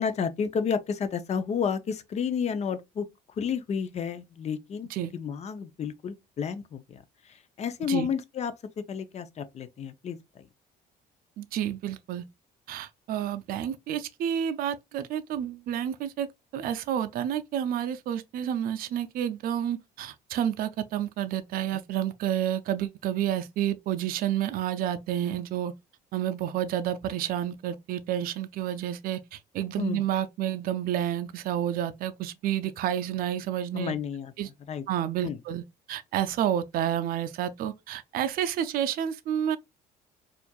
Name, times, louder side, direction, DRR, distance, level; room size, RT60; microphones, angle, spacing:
voice 1, 0.0-3.1 3.4-7.0 7.3-10.5 29.8-30.0 33.7-34.3 34.7-34.8 35.2-35.4, left 6 dB, 40° left, 0.6 m, -31 dB
voice 2, 11.4-12.2 12.7-25.7 26.1-33.9 34.4-34.5 34.9-39.6, right 10 dB, 60° right, 0.4 m, -30 dB
4.3 x 2.5 x 2.3 m
cardioid pair, 110°, 17 cm